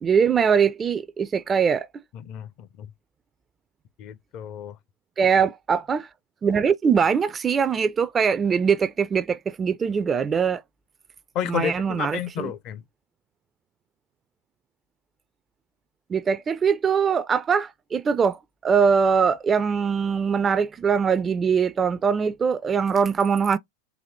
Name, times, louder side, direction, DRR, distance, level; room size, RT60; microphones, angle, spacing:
voice 1, 0.0-1.9 5.2-6.1 6.4-10.6 11.5-12.5 16.1-23.6, right 6 dB, 20° right, 0.4 m, -22 dB
voice 2, 2.1-2.9 4.0-4.8 11.3-12.8, left 10 dB, 40° left, 0.5 m, -31 dB
4.0 x 2.6 x 3.2 m
figure-of-eight pair, 90°, 0 cm